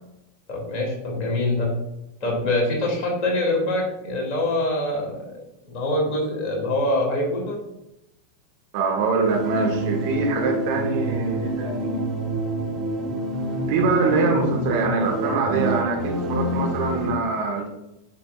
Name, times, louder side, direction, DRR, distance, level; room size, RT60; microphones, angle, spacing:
voice 1, 0.5-1.7 2.2-5.4 5.6-7.5, left 1 dB, 35° left, -1 dB, 2.7 m, -24 dB
voice 2, 8.7-12.1 13.7-17.7, right 4 dB, 45° right, 0 dB, 1.6 m, -24 dB
sound 1, 9.2-17.1, right 1 dB, 25° right, 1.5 m, -27 dB
8.6 x 6.0 x 2.5 m, 0.86 s
figure-of-eight pair, 90°, 0 cm